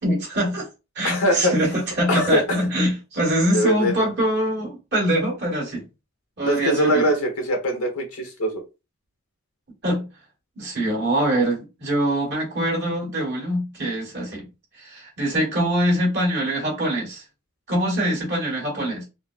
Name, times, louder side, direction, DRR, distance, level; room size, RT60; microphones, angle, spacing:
voice 1, 0.0-0.7 0.9-5.9 6.4-7.0 9.8-10.1 10.6-14.5 14.7-17.2 17.7-19.0, right 1 dB, 50° right, 1.5 m, -23 dB
voice 2, 1.0-1.5 2.1-2.6 3.5-4.1 6.4-8.6, equal, 85° left, 1.0 m, -22 dB
3.7 x 2.0 x 2.3 m
head